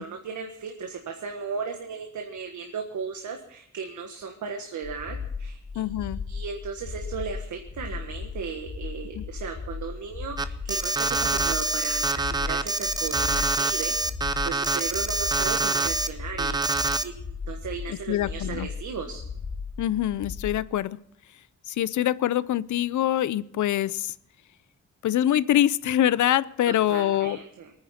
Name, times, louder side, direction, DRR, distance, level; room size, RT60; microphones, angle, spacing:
voice 1, 0.0-5.8 6.3-13.9 14.4-17.1 17.5-19.2 26.7-27.7, right 5 dB, 80° right, 3 dB, 1.5 m, -36 dB
sound 1, 4.8-20.7, left 5 dB, 45° left, 1.9 m, -36 dB
voice 2, 5.8-6.2 9.2-9.3 17.9-18.7 19.8-21.0 21.7-24.1 25.0-27.4, left 12 dB, 80° left, 19 dB, 0.6 m, -24 dB
Alarm, 10.4-16.1 16.4-17.0, right 3 dB, 15° right, 0.6 m, -26 dB
24.0 x 9.7 x 4.3 m, 0.73 s
wide cardioid pair, 170°, 29 cm